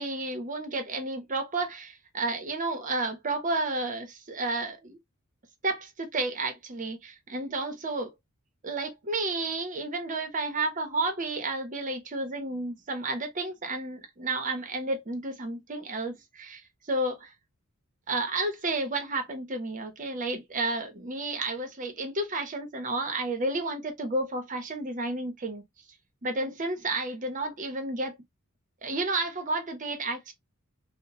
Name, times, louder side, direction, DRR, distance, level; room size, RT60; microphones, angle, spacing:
voice 1, 0.0-5.0 5.6-8.1 8.6-16.6 16.9-17.3 18.1-25.6 26.2-28.2 28.8-30.3, right 2 dB, 35° right, 0.7 m, -31 dB
2.8 x 2.0 x 2.8 m
head